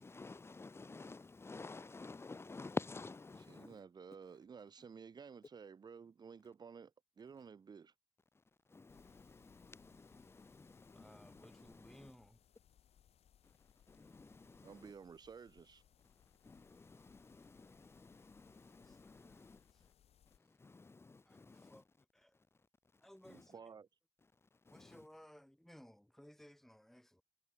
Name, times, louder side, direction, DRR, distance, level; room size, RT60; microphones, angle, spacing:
voice 1, 0.0-3.8 8.7-12.1 13.4-13.5 13.9-14.9 16.4-19.6 20.4-21.8 23.2-23.5 24.6-25.1, left 3 dB, 20° left, 3.0 m, -50 dB
voice 2, 3.5-7.9 14.6-15.8 23.3-23.9, right 6 dB, 40° right, 1.8 m, -54 dB
sound 1, 8.9-20.4, left 9 dB, 65° left, 6.7 m, -69 dB
voice 3, 10.9-12.4 18.8-19.9 21.3-22.4 23.0-23.8 24.7-27.2, equal, 5° left, 5.3 m, -61 dB
cardioid pair, 120°, 11 cm